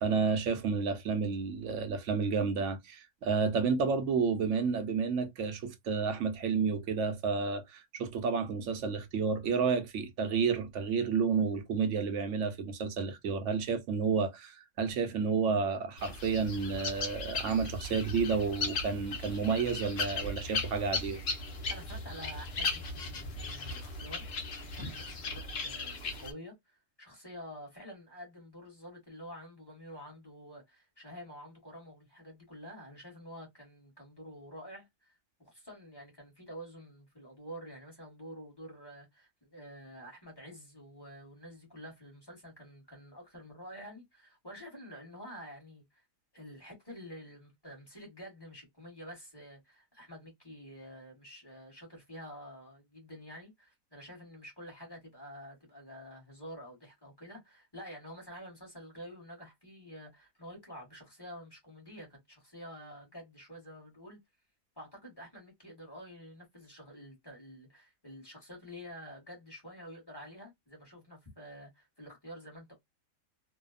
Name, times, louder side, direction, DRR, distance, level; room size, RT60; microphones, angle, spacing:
voice 1, 0.0-21.2, right 5 dB, 65° right, 0.8 m, -31 dB
sound 1, 16.0-26.3, left 3 dB, 50° left, 0.9 m, -37 dB
voice 2, 21.7-24.3 24.7-35.1 35.4-46.0 46.3-64.2 64.8-72.7, equal, 20° left, 1.1 m, -49 dB
2.7 x 2.2 x 2.3 m
omnidirectional pair, 1.5 m